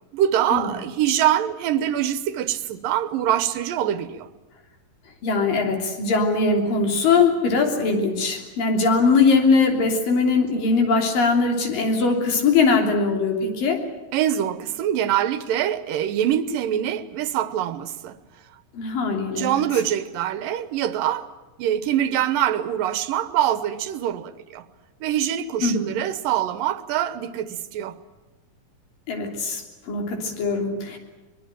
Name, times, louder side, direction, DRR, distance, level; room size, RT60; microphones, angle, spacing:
voice 1, 0.1-4.3 14.1-18.1 19.3-21.3 21.6-24.6 25.0-28.0, right 11 dB, 85° right, 2.8 m, -24 dB
voice 2, 5.2-13.8 18.7-19.6 25.6-26.0 29.1-29.6 29.9-31.0, left 4 dB, 80° left, 4.9 m, -21 dB
23.0 x 21.5 x 9.1 m
omnidirectional pair, 3.9 m